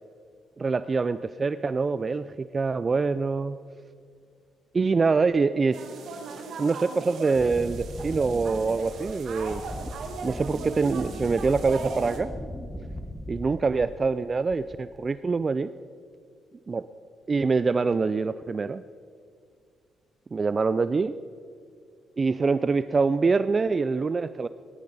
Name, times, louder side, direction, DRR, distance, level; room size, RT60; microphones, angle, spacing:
voice 1, 0.6-3.6 4.7-5.8 6.6-9.9 10.2-12.3 13.3-15.7 16.7-16.8 17.3-18.8 20.3-21.2 22.2-24.5, right 4 dB, 35° right, 14 dB, 0.3 m, -25 dB
sound 1, 5.7-12.2, right 4 dB, 70° right, 1.6 m, -38 dB
Wind, 7.3-14.2 14.5-15.0, left 1 dB, 5° left, 1.0 m, -39 dB
17.0 x 12.0 x 4.1 m, 2.2 s
cardioid pair, 90°, 0 cm